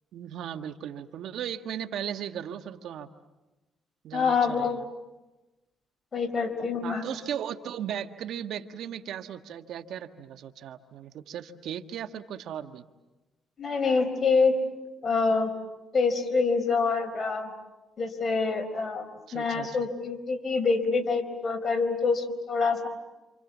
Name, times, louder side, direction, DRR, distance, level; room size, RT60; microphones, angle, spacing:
voice 1, 0.1-3.1 4.0-4.8 6.8-12.8 19.3-19.9, right 9 dB, 75° right, 8 dB, 1.4 m, -37 dB
voice 2, 4.1-4.8 6.1-7.1 13.6-14.5 15.0-15.5 15.9-17.5 18.0-19.0 19.3-22.9, left 4 dB, 40° left, 6 dB, 4.4 m, -26 dB
28.0 x 28.0 x 7.2 m, 1.1 s
cardioid pair, 90°, 0 cm